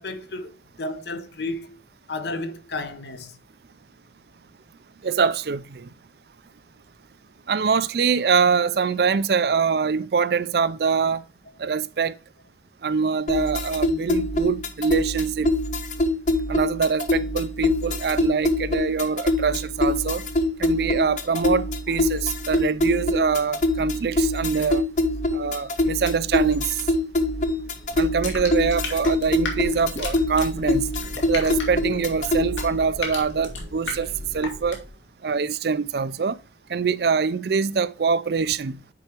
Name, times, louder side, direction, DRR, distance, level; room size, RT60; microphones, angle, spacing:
voice 1, 0.0-1.8 2.1-3.4, left 2 dB, 65° left, 1.0 m, -32 dB
voice 2, 5.0-5.9 7.5-11.2 11.6-12.1 12.8-15.5 16.5-20.2 20.6-24.9 25.3-26.8 28.0-30.9 31.3-34.8 35.2-36.4 36.7-38.8, right 5 dB, 60° right, 0.4 m, -24 dB
sound 1, 13.3-32.8, left 2 dB, 40° left, 0.7 m, -25 dB
sound 2, 27.7-35.0, left 3 dB, 80° left, 2.2 m, -35 dB
9.7 x 4.6 x 2.9 m
head